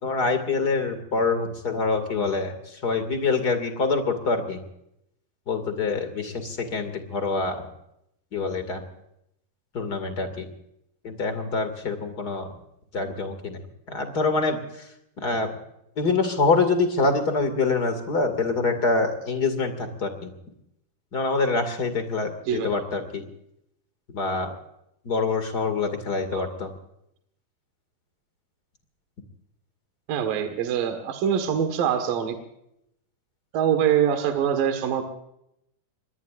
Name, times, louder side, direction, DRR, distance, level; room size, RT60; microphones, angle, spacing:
voice 1, 0.0-4.6 5.5-7.7 8.3-8.8 9.7-10.5 11.0-12.5 12.9-13.6 13.9-14.9 15.2-15.5 16.0-20.3 21.1-23.2 24.1-24.5 25.0-26.7, left 4 dB, 30° left, 8 dB, 2.1 m, -25 dB
voice 2, 30.1-32.4 33.5-35.0, right 8 dB, 65° right, 6 dB, 3.1 m, -24 dB
26.0 x 21.5 x 2.5 m, 0.78 s
omnidirectional pair, 4.7 m